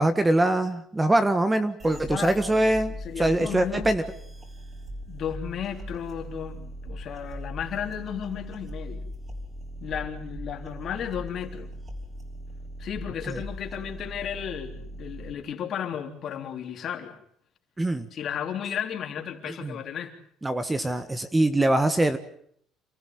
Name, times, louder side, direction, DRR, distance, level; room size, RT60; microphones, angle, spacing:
voice 1, 0.0-4.0 17.8-18.1 19.5-19.7 20.4-22.2, right 1 dB, 10° right, 11 dB, 1.4 m, -23 dB
voice 2, 1.8-2.6 3.0-3.9 5.1-9.1 9.8-11.7 12.8-17.2 18.1-20.2, left 8 dB, 50° left, 4 dB, 3.6 m, -34 dB
sound 1, 1.8-15.3, equal, 30° right, 5.6 m, -39 dB
28.0 x 15.0 x 9.6 m, 0.67 s
cardioid pair, 130°, 0 cm